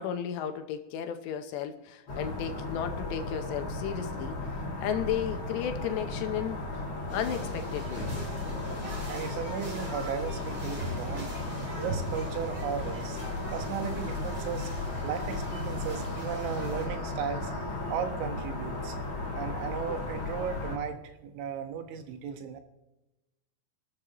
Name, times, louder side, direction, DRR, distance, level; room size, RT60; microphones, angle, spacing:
voice 1, 0.0-4.4 4.8-6.6 7.1-8.1, left 9 dB, 75° left, 6 dB, 2.8 m, -33 dB
sound 1, 2.1-20.8, left 2 dB, 35° left, 2.6 m, -36 dB
sound 2, 7.1-16.9, left 1 dB, 30° right, 2.7 m, -38 dB
voice 2, 9.1-11.3 11.8-13.2 13.5-14.7 15.0-17.5 17.9-19.0 19.3-22.6, right 7 dB, 85° right, 6 dB, 3.7 m, -35 dB
27.0 x 12.5 x 3.0 m, 0.99 s
omnidirectional pair, 5.4 m